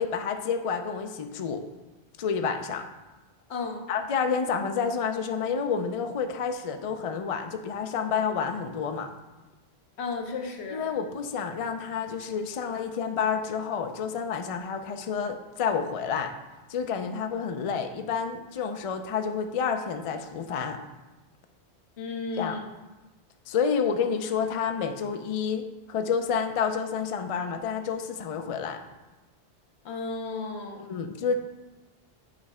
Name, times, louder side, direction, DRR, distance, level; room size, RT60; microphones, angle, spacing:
voice 1, 0.0-1.6 2.2-2.9 3.9-9.1 10.7-16.3 16.7-20.8 22.4-22.6 23.5-28.8 30.8-31.4, left 6 dB, 50° left, 7 dB, 0.4 m, -29 dB
voice 2, 3.5-3.9 10.0-10.9 22.0-22.6 29.8-30.9, left 3 dB, 80° left, 3 dB, 1.1 m, -34 dB
8.4 x 3.2 x 4.8 m, 1.1 s
omnidirectional pair, 1.1 m